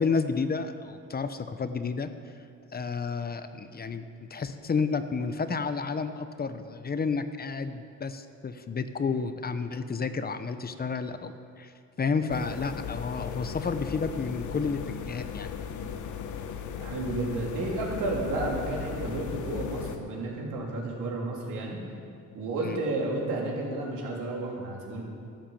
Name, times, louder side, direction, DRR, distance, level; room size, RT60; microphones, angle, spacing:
voice 1, 0.0-2.1 2.7-11.7 12.0-15.5 22.6-22.8, left 5 dB, 30° left, 10 dB, 0.8 m, -31 dB
sound 1, 12.3-20.0, left 7 dB, 75° left, 1.0 m, -37 dB
voice 2, 16.8-21.8 22.3-25.0, right 2 dB, 85° right, -2 dB, 3.2 m, -32 dB
13.0 x 10.0 x 7.1 m, 2.3 s
cardioid pair, 90°, 30 cm